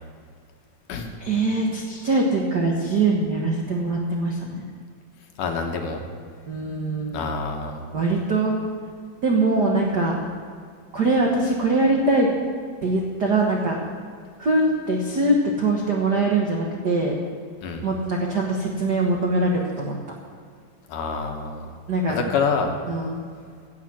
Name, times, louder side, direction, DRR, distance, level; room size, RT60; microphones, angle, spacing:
voice 1, 1.2-4.6 6.5-7.3 7.9-8.6 9.2-10.2 10.9-12.3 12.8-13.8 14.4-17.2 17.8-20.0 21.9-22.2 22.9-23.2, right 2 dB, 60° right, -1 dB, 1.0 m, -22 dB
voice 2, 5.4-6.0 7.1-7.9 17.6-17.9 20.9-21.7 22.1-22.7, left 5 dB, 70° left, 3 dB, 2.7 m, -27 dB
16.0 x 7.4 x 7.4 m, 2.1 s
omnidirectional pair, 3.9 m